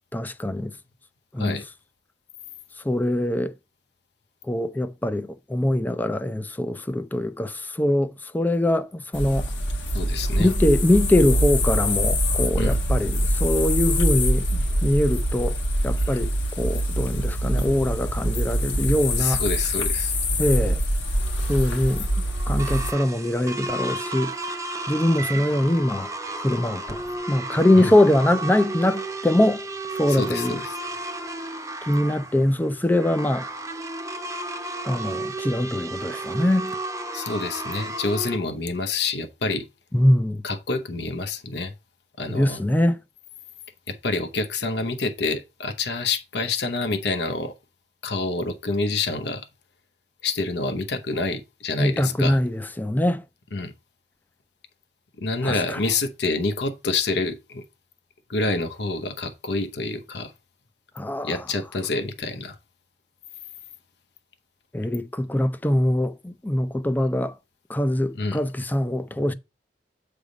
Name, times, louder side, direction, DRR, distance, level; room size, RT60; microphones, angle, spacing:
voice 1, 0.1-0.7 1.3-1.6 2.8-3.5 4.5-9.5 10.4-15.6 15.8-19.4 20.4-20.8 21.5-24.3 24.9-26.1 26.4-27.0 27.3-29.6 29.9-30.6 31.9-33.5 34.8-36.7 39.9-40.4 42.3-43.0 51.8-53.2 55.4-55.8 61.0-61.4 64.7-67.3 67.7-69.3, left 1 dB, 10° left, 0.4 m, -23 dB
sound 1, 9.1-22.9, equal, 85° left, 1.6 m, -24 dB
voice 2, 9.9-10.5 12.6-12.8 16.0-16.2 18.7-18.9 19.2-20.2 27.7-27.9 30.1-30.7 37.1-39.7 40.4-41.7 42.2-42.6 43.9-47.5 48.0-49.5 50.2-52.4 53.5-53.7 55.2-57.6 58.3-60.3 61.2-62.6 68.1-68.4, left 3 dB, 65° left, 0.8 m, -27 dB
sound 2, 21.2-38.4, right 2 dB, 20° right, 0.7 m, -33 dB
8.1 x 3.5 x 5.1 m
head